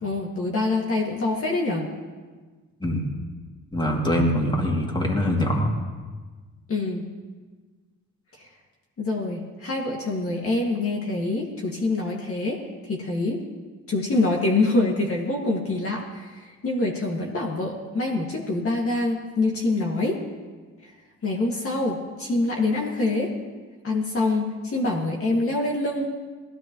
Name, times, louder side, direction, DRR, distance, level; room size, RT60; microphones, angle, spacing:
voice 1, 0.0-1.9 6.7-7.1 8.4-8.5 9.0-12.6 12.9-13.4 13.9-20.2 20.8-20.9 21.2-23.3 23.8-26.1, left 2 dB, 45° left, -2 dB, 2.3 m, -25 dB
voice 2, 3.7-5.7, equal, 15° left, -1 dB, 2.8 m, -23 dB
20.0 x 16.0 x 3.2 m, 1.4 s
cardioid pair, 90°, 30 cm